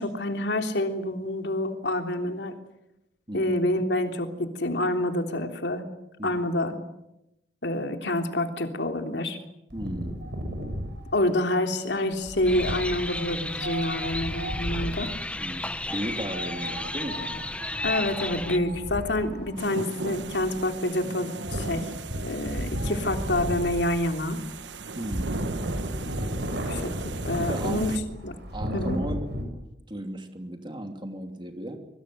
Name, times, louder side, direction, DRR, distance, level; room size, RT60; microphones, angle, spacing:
voice 1, 0.0-2.5 3.3-5.8 6.2-6.8 7.6-9.4 11.1-15.1 17.8-21.9 22.2-24.4 26.7-26.9 27.2-27.9 28.2-28.3 28.7-29.0, left 1 dB, 70° left, 5 dB, 3.3 m, -27 dB
voice 2, 9.7-10.2 15.3-17.6 25.0-25.4 27.3-27.9 28.5-29.3 29.9-31.8, right 1 dB, 25° right, 5 dB, 2.9 m, -35 dB
Wind, 9.7-15.1 16.2-29.4, equal, 65° right, 6.7 m, -34 dB
sound 1, 12.4-18.6, left 2 dB, 5° left, 1.1 m, -33 dB
sound 2, 19.6-28.0, right 3 dB, 85° right, 1.1 m, -38 dB
25.5 x 24.0 x 8.0 m, 0.86 s
head